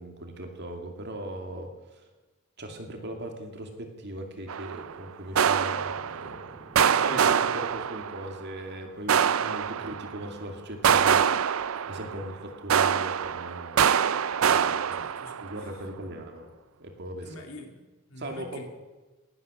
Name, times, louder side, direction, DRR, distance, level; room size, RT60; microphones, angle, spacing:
voice 1, 0.0-2.0 2.6-13.8 14.5-15.0 15.4-16.5 16.8-17.4 18.2-18.7, right 1 dB, 50° right, 4 dB, 2.4 m, -39 dB
sound 1, 4.5-4.9 5.4-6.5 6.8-8.4 9.1-10.2 10.8-12.3 12.7-15.6, right 8 dB, 70° right, 0.5 m, -25 dB
voice 2, 14.9-15.9 17.2-18.7, left 1 dB, 75° left, 3 dB, 2.6 m, -47 dB
18.5 x 10.0 x 6.4 m, 1.2 s
head